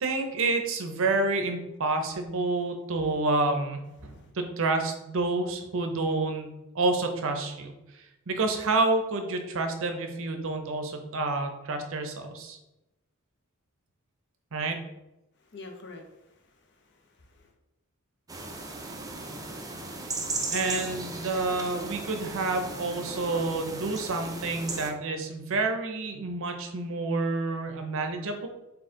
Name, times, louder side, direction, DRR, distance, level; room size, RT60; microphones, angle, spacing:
voice 1, 0.0-12.6 14.5-14.8 20.5-28.5, right 3 dB, 65° right, 5 dB, 0.6 m, -29 dB
voice 2, 15.4-17.5 19.8-20.5 24.0-24.1, left 3 dB, 55° left, 4 dB, 0.7 m, -49 dB
sound 1, 18.3-24.9, right 3 dB, 15° right, 0.5 m, -36 dB
4.3 x 2.7 x 3.7 m, 0.95 s
head